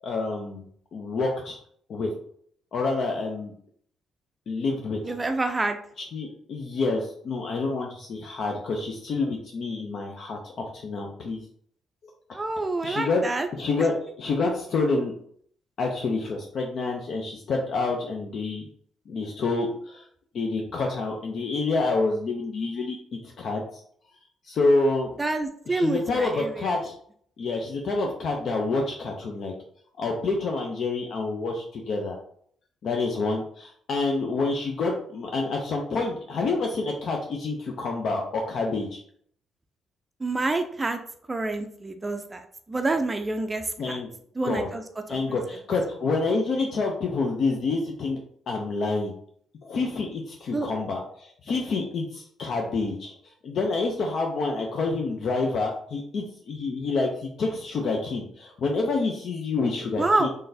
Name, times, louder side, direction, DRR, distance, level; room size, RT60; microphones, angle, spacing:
voice 1, 0.0-1.6 1.9-2.1 2.7-3.5 4.5-5.0 6.1-11.4 12.3-12.4 12.8-13.3 13.5-15.1 15.8-18.7 19.1-20.0 20.3-23.0 23.4-23.8 24.4-25.1 25.7-26.9 27.4-29.5 30.0-32.2 32.8-39.0 43.8-44.1 44.4-44.7 45.1-48.2 48.5-49.1 49.6-53.1 53.4-60.3, left 3 dB, 60° left, 1 dB, 0.5 m, -28 dB
voice 2, 5.0-5.8 12.3-13.5 25.2-26.8 40.2-41.0 41.3-44.0 44.4-44.8 45.1-45.4 50.5-50.7 60.0-60.3, right 2 dB, 20° right, 6 dB, 0.4 m, -27 dB
3.7 x 3.3 x 2.7 m, 0.62 s
cardioid pair, 90°, 0 cm